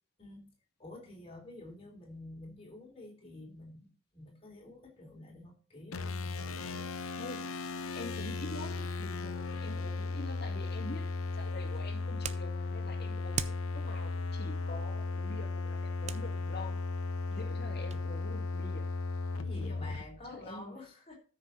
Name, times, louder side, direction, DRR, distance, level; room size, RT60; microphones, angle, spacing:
voice 1, 0.8-6.9 19.4-21.2, left 2 dB, 25° left, 3.4 m, -49 dB
sound 1, 5.9-20.0, left 3 dB, 85° left, 1.0 m, -36 dB
voice 2, 7.1-7.5 7.9-11.1 11.3-17.0 17.3-18.9 19.5-20.8, left 2 dB, 50° left, 2.2 m, -46 dB
sound 2, 11.3-18.1, right 7 dB, 30° right, 0.5 m, -46 dB
13.5 x 6.1 x 4.0 m
head